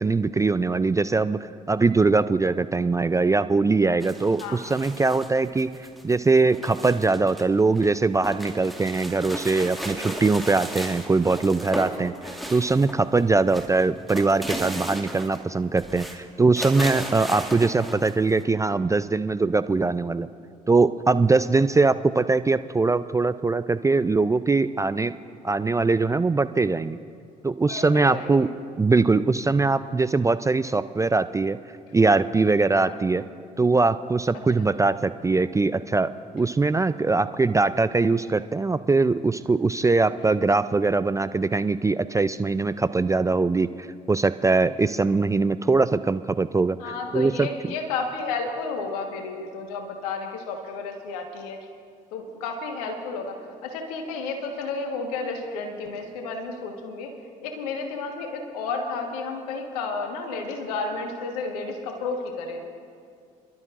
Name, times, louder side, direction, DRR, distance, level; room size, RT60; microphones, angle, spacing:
voice 1, 0.0-1.4 1.7-5.8 6.0-20.3 20.7-25.1 25.4-27.0 27.4-28.5 28.8-31.6 31.9-33.2 33.6-47.5, right 3 dB, 15° right, 13 dB, 0.4 m, -22 dB
sound 1, 4.0-7.4 7.7-13.2 13.5-15.5 15.8-16.2 16.6-18.4, right 1 dB, ahead, 2.1 m, -35 dB
voice 2, 4.4-4.8 5.0-5.2 27.7-28.5 32.7-33.0 46.8-51.6 52.1-57.1 57.4-62.7, left 4 dB, 80° left, 4 dB, 1.5 m, -32 dB
29.0 x 12.5 x 2.5 m, 2.3 s
hypercardioid pair, 55°, 19 cm